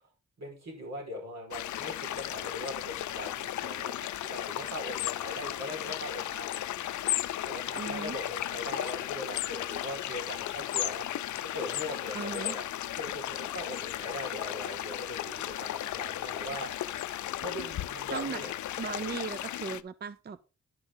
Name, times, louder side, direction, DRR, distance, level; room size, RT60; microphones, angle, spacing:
voice 1, 0.4-6.6 7.4-11.1 11.4-12.7 13.0-16.7 17.4-18.5, left 1 dB, 65° right, -1 dB, 5.3 m, -40 dB
sound 1, 1.5-19.8, left 13 dB, 75° left, 0.5 m, -35 dB
voice 2, 7.8-8.2 12.1-12.6 18.1-18.4 18.8-20.4, right 5 dB, 35° right, 15 dB, 0.5 m, -37 dB
10.5 x 6.0 x 3.9 m, 0.32 s
cardioid pair, 85°, 29 cm